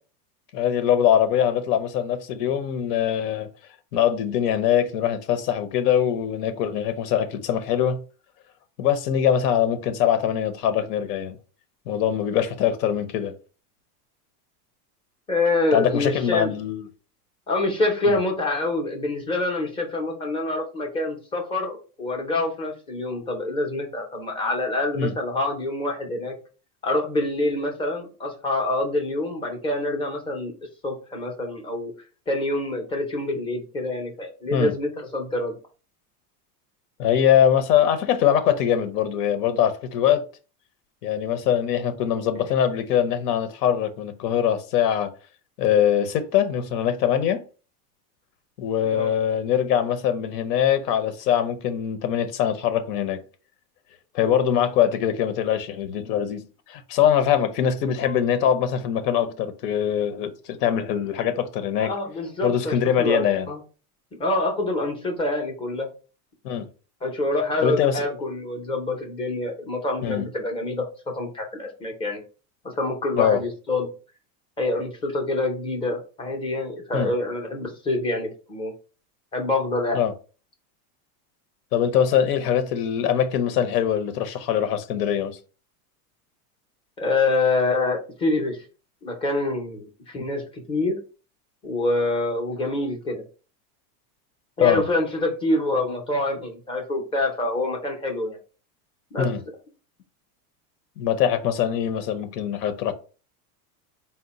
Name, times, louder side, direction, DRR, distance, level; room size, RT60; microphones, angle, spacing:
voice 1, 0.5-3.5 3.9-8.0 8.8-11.4 11.9-13.3 15.7-16.9 18.1-18.2 25.0-25.1 34.5-34.7 37.0-40.2 41.0-45.1 45.6-47.4 48.6-53.2 54.1-56.4 56.7-61.9 62.4-63.5 66.4-66.7 67.6-68.1 70.0-70.2 73.2-73.4 76.9-77.1 79.9-80.1 81.7-85.4 90.2-90.3 94.6-94.8 99.2-99.4 101.0-102.9, left 9 dB, 85° left, 0.8 m, -22 dB
voice 2, 15.3-16.5 17.5-26.3 26.8-30.5 30.8-31.9 32.3-35.6 48.8-49.1 61.8-63.6 64.2-65.9 67.0-70.8 71.1-72.2 72.8-73.9 74.6-78.7 79.3-80.0 87.0-88.7 89.0-91.0 91.6-93.2 94.6-98.4 99.1-99.3, left 2 dB, 10° left, 0.5 m, -26 dB
4.2 x 2.1 x 4.0 m
supercardioid pair, 155°, 47 cm